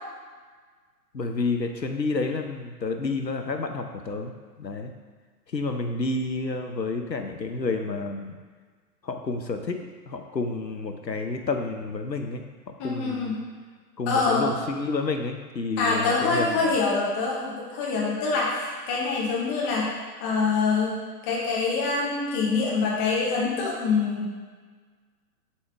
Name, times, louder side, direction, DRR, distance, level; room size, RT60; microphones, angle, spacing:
voice 1, 1.1-4.9 5.5-8.3 9.0-9.8 10.1-13.3 14.0-16.7, left 3 dB, 85° left, 5 dB, 0.9 m, -30 dB
voice 2, 12.8-13.4 14.1-14.5 15.8-19.9 20.2-21.0 21.2-24.4, left 4 dB, 10° left, -4 dB, 0.6 m, -25 dB
7.2 x 6.4 x 3.5 m, 1.5 s
figure-of-eight pair, 120°, 49 cm